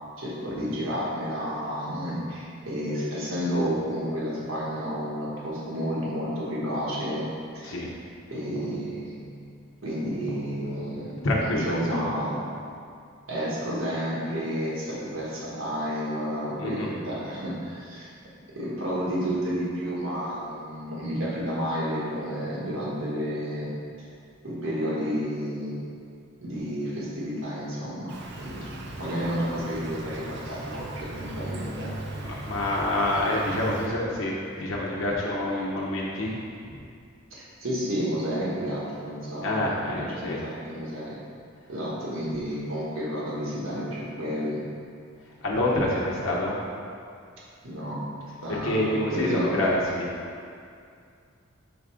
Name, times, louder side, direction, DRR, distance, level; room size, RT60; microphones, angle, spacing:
voice 1, 0.2-7.7 8.3-9.2 9.8-12.4 13.3-18.1 18.5-23.7 24.4-25.8 26.4-31.9 37.3-41.2 41.7-44.6 47.6-48.0 48.4-49.5, equal, 80° right, -6 dB, 1.4 m, -31 dB
voice 2, 11.2-12.0 16.6-17.0 32.2-36.4 36.7-36.8 39.4-40.4 45.4-46.6 48.5-50.1, left 1 dB, 75° left, -5 dB, 0.9 m, -27 dB
Insect, 28.1-33.9, right 2 dB, 55° right, 0.6 m, -38 dB
5.2 x 3.8 x 4.9 m, 2.4 s
head